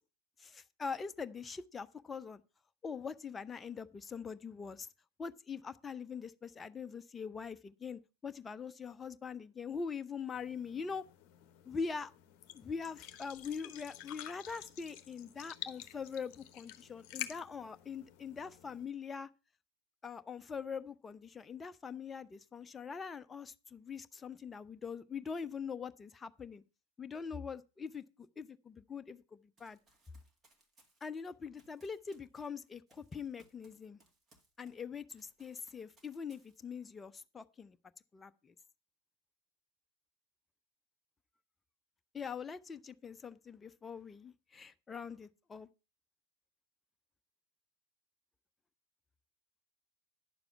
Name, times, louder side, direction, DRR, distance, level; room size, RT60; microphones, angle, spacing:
voice 1, 0.4-2.4 2.8-4.9 5.2-11.0 11.7-12.1 12.5-19.3 20.0-26.6 27.0-28.0 28.4-29.8 31.0-34.0 34.6-37.8 38.1-38.5 42.1-45.7, left 5 dB, 15° left, 0.6 m, -43 dB
sound 1, 10.3-18.8, left 11 dB, 40° left, 1.0 m, -49 dB
Run, 29.6-34.8 35.1-36.9, right 1 dB, 20° right, 2.1 m, -69 dB
9.9 x 7.0 x 5.5 m
figure-of-eight pair, 90°, 0 cm